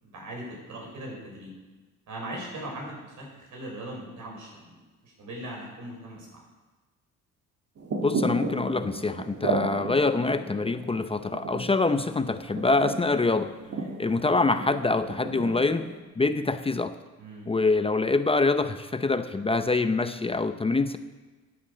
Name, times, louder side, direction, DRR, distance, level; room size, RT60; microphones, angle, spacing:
voice 1, 0.0-1.5 2.1-4.6 5.0-6.4 13.6-14.0 17.2-17.5, right 1 dB, 75° right, -1 dB, 6.0 m, -40 dB
sound 1, 7.8-16.0, right 3 dB, 50° right, 2.1 m, -34 dB
voice 2, 8.0-13.5 14.0-15.9 16.2-16.9 17.5-21.0, left 3 dB, 20° left, 10 dB, 0.7 m, -25 dB
14.0 x 9.5 x 6.9 m, 1.3 s
cardioid pair, 90°, 30 cm